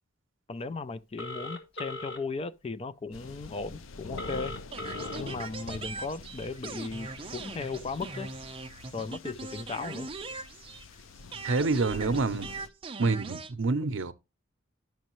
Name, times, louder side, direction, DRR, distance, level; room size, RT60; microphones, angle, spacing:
voice 1, 0.5-4.5 5.2-8.3 8.9-10.1, left 4 dB, 30° left, 0.4 m, -36 dB
Telephone, 1.2-2.2 4.2-5.2, left 1 dB, 65° left, 1.5 m, -38 dB
sound 1, 3.1-12.7, left 4 dB, 90° left, 0.5 m, -45 dB
sound 2, 4.7-11.0 11.3-13.5, right 4 dB, 25° right, 0.5 m, -40 dB
voice 2, 11.4-12.5 13.0-14.1, right 3 dB, 75° right, 0.6 m, -27 dB
10.5 x 6.4 x 3.0 m
head